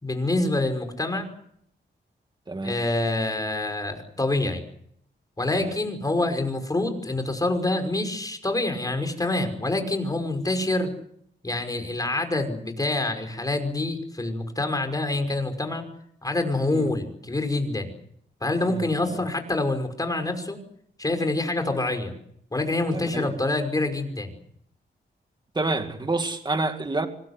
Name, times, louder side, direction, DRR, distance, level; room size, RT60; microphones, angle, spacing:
voice 1, 0.0-1.3 2.6-4.6 5.4-10.9 11.4-15.8 16.2-17.9 18.4-20.6 21.0-22.1 22.5-24.3, left 2 dB, 20° left, 5.7 m, -26 dB
voice 2, 18.7-19.2 22.9-23.3 25.5-27.1, right 2 dB, 20° right, 2.3 m, -29 dB
25.5 x 21.0 x 8.2 m
wide cardioid pair, 110°, 19 cm